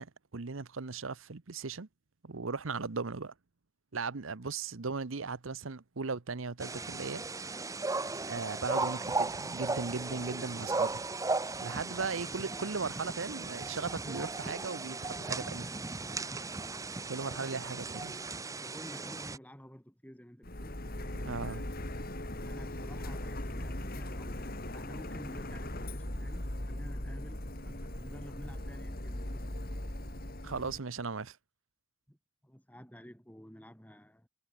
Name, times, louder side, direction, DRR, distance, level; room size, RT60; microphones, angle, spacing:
voice 1, 0.0-1.9 2.2-3.3 3.9-7.2 8.3-11.3 11.6-15.7 17.1-18.2 21.2-21.6 30.4-31.4, right 4 dB, 80° right, 0.9 m, -37 dB
sound 1, 6.6-19.4, right 3 dB, 15° right, 0.7 m, -36 dB
voice 2, 17.3-21.6 22.4-27.5 28.0-29.6 32.1-32.2 32.4-34.3, equal, 10° left, 6.2 m, -51 dB
Printer, 20.4-30.8, left 1 dB, 45° left, 3.9 m, -39 dB
head